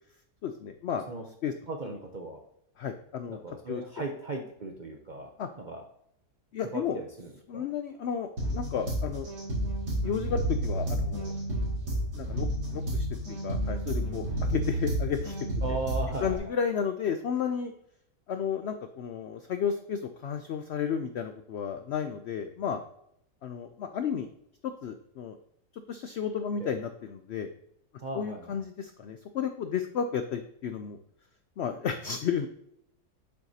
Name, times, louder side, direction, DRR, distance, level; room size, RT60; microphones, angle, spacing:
voice 1, 0.4-1.5 2.8-3.4 3.7-3.8 5.4-5.5 6.5-7.0 7.5-9.3 10.0-11.4 12.1-15.3 16.2-17.7 18.3-22.8 23.4-24.3 24.6-25.4 25.9-27.5 28.1-31.0 31.6-32.5, left 7 dB, 80° left, 8 dB, 0.5 m, -32 dB
voice 2, 1.7-2.4 3.3-5.3 5.6-5.8 6.6-7.7 15.6-16.5 26.6-26.7 28.0-28.6, right 3 dB, 50° right, 2 dB, 0.5 m, -37 dB
sound 1, 8.4-16.4, right 1 dB, 80° right, 2.8 m, -31 dB
7.7 x 7.1 x 2.8 m, 0.73 s
omnidirectional pair, 1.7 m